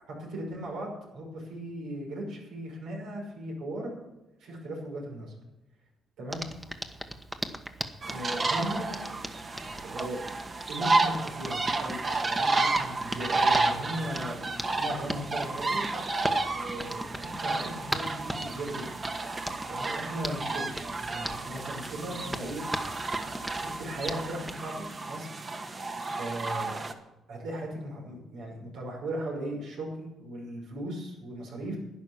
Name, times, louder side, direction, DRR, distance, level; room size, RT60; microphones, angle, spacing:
voice 1, 0.1-4.0 4.4-5.3 6.2-6.4 8.1-9.0 9.8-10.2 10.7-12.0 12.3-14.4 14.8-15.8 16.5-18.9 19.7-20.7 21.0-22.6 23.4-25.3 26.0-26.7 27.3-31.8, right 1 dB, 85° right, -1 dB, 5.7 m, -37 dB
Hands, 6.3-24.6, equal, 5° right, 1.2 m, -40 dB
sound 1, 8.0-26.9, right 3 dB, 35° right, 1.4 m, -31 dB
11.5 x 10.0 x 7.3 m, 0.98 s
cardioid pair, 90°, 0 cm